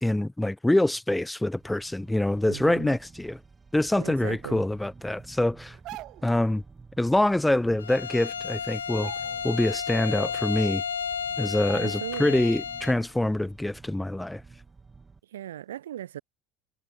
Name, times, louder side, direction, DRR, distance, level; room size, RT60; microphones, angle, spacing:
voice 1, 0.0-3.4 3.7-5.8 6.2-6.6 7.0-9.1 9.4-10.8 11.4-14.4, left 1 dB, 5° left, 0.5 m, -25 dB
sound 1, 1.5-15.2, right 4 dB, 25° right, 3.3 m, -51 dB
voice 2, 2.5-3.0 4.0-4.6 11.7-12.5 15.3-16.2, right 12 dB, 80° right, 0.4 m, -38 dB
sound 2, 5.7-6.4 7.9-8.0 8.3-8.5 8.9-9.7 10.1-10.2 11.0-11.1 11.6-12.3 12.6-12.8, right 17 dB, 60° right, 1.7 m, -44 dB
Bowed string instrument, 7.8-13.0, left 7 dB, 90° left, 0.4 m, -32 dB
hypercardioid pair, 70°, 0 cm